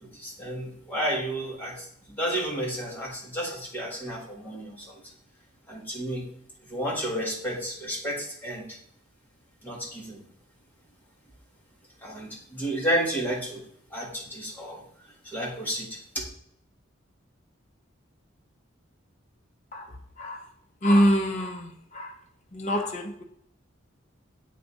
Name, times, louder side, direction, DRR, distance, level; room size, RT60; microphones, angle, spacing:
voice 1, 0.0-5.0 5.7-6.3 6.7-8.8 9.6-10.2 12.0-13.6 13.9-14.8 15.2-16.2, equal, 10° left, -4 dB, 1.5 m, -31 dB
voice 2, 20.8-21.7 22.0-22.1 22.5-23.2, equal, 35° left, 0 dB, 0.6 m, -24 dB
8.2 x 3.4 x 4.1 m, 0.70 s
head